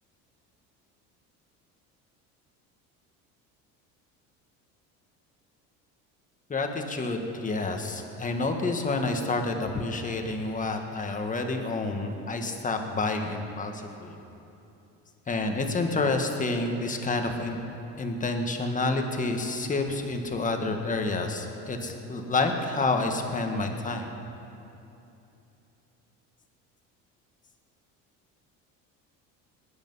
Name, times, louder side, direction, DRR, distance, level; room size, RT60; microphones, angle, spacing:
voice 1, 6.5-14.2 15.3-17.7 18.0-24.1, left 3 dB, 25° left, 4 dB, 1.6 m, -29 dB
19.5 x 10.5 x 5.5 m, 2.9 s
cardioid pair, 115°, 33 cm